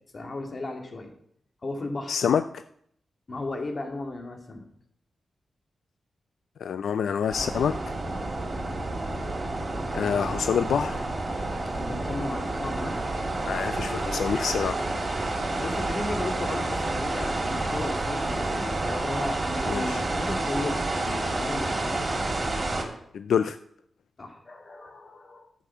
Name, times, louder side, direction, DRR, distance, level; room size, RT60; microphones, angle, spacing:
voice 1, 0.1-1.1 1.6-2.2 3.3-4.6 8.1-8.3 11.7-13.0 14.7-14.9 15.5-22.0 24.2-25.5, left 2 dB, 45° left, 4 dB, 2.3 m, -35 dB
voice 2, 2.1-2.6 6.6-7.7 9.9-11.0 13.4-15.2 19.7-20.0 23.1-23.6, left 7 dB, 85° left, 12 dB, 0.4 m, -27 dB
sound 1, 7.3-22.8, right 2 dB, 35° right, 3.1 m, -29 dB
11.5 x 7.5 x 7.2 m, 0.69 s
cardioid pair, 80°, 0 cm